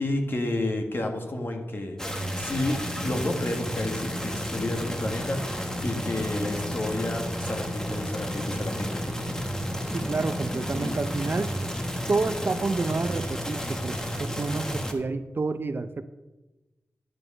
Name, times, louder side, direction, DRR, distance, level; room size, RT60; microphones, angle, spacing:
voice 1, 0.0-2.0 2.3-9.0, left 1 dB, 45° left, 3 dB, 1.6 m, -31 dB
sound 1, 2.0-14.9, equal, 10° left, 1.1 m, -32 dB
voice 2, 9.9-11.5 12.1-16.0, right 3 dB, 45° right, 11 dB, 0.6 m, -29 dB
11.0 x 5.4 x 5.4 m, 1.1 s
wide cardioid pair, 70°, 5 cm